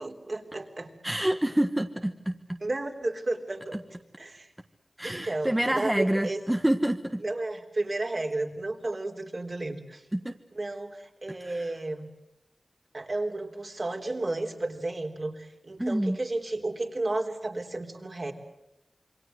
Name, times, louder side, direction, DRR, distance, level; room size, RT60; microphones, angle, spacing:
voice 1, 0.0-0.9 2.6-3.8 4.2-4.5 5.0-6.4 7.2-10.0 10.6-12.1 12.9-18.3, right 2 dB, 55° right, 3 dB, 3.7 m, -32 dB
voice 2, 1.0-2.6 3.7-3.8 5.0-7.2 10.1-10.3 11.4-11.7 15.8-16.2, right 1 dB, 15° right, 6 dB, 1.3 m, -27 dB
27.5 x 23.5 x 7.9 m, 0.87 s
wide cardioid pair, 65°, 0 cm